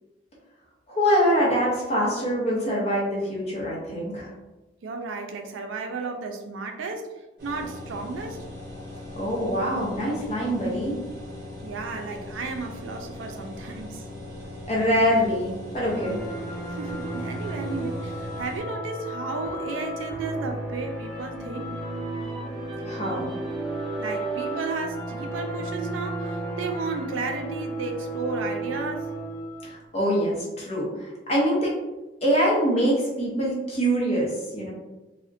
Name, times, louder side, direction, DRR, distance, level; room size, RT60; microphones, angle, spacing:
voice 1, 0.9-4.3 9.2-11.0 14.7-16.2 22.8-23.3 29.6-31.7 32.2-34.7, equal, 35° left, -4 dB, 0.6 m, -24 dB
voice 2, 4.8-8.5 11.6-14.0 16.7-21.7 24.0-29.1, right 3 dB, 85° right, 4 dB, 0.4 m, -33 dB
sound 1, 7.4-18.6, left 1 dB, 50° right, 0.8 m, -40 dB
sound 2, 15.9-29.8, right 2 dB, ahead, 1.1 m, -33 dB
2.4 x 2.1 x 2.5 m, 1.1 s
head